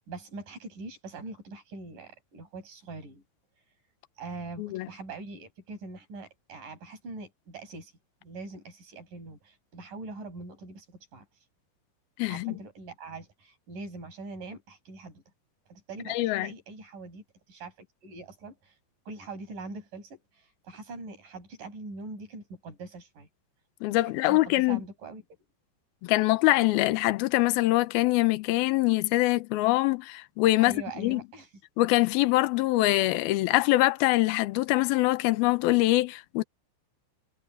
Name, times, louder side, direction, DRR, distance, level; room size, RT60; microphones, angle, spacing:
voice 1, 0.0-3.2 4.2-7.9 8.2-11.3 12.3-15.2 15.7-18.8 19.1-23.3 23.9-25.2 30.6-31.5, right 3 dB, 45° right, 9.6 m, -43 dB
voice 2, 12.2-12.6 16.1-16.5 23.8-24.8 26.0-31.2 31.8-36.4, left 18 dB, 75° left, 2.4 m, -24 dB
omnidirectional pair, 5.3 m